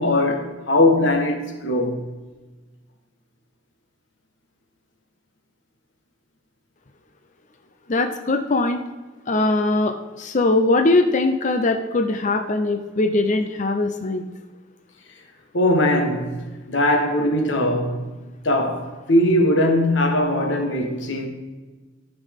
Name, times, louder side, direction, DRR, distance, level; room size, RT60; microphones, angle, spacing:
voice 1, 0.0-1.4 1.6-2.1 15.5-18.1 18.4-21.3, left 1 dB, 90° left, 1.3 m, -20 dB
voice 2, 7.9-8.8 9.3-14.2, left 2 dB, 40° left, 0.6 m, -21 dB
13.5 x 6.0 x 3.6 m
head